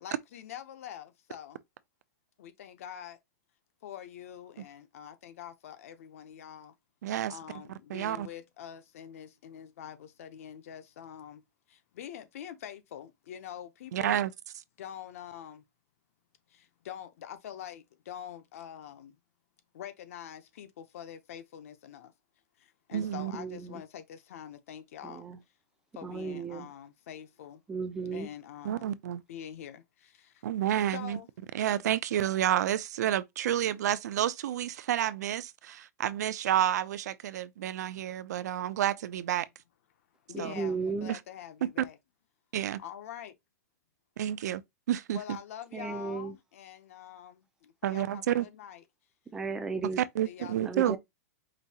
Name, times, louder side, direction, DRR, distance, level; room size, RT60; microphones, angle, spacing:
voice 1, 0.0-1.6 2.4-3.2 3.8-6.7 7.3-11.4 11.7-14.2 14.8-15.6 16.5-19.2 19.7-22.1 22.6-25.3 25.9-27.6 28.1-28.9 29.3-30.4 30.9-31.3 40.3-42.0 42.8-43.3 45.1-48.8 50.2-51.0, left 10 dB, 50° left, 0.6 m, -45 dB
voice 2, 7.0-7.4 7.9-8.3 13.9-14.3 22.9-23.3 28.6-29.2 30.4-31.2 31.5-39.5 40.4-40.5 41.1-41.2 41.6-41.9 42.5-42.8 44.2-44.6 44.9-45.4 47.8-48.5 50.0-51.0, right 11 dB, 70° right, 0.5 m, -30 dB
voice 3, 23.3-23.8 25.0-25.4 26.0-26.7 27.7-28.3 40.3-41.1 45.7-46.4 49.3-50.0 50.6-51.0, right 4 dB, 5° right, 0.3 m, -35 dB
5.1 x 2.7 x 2.8 m
supercardioid pair, 180°, 9 cm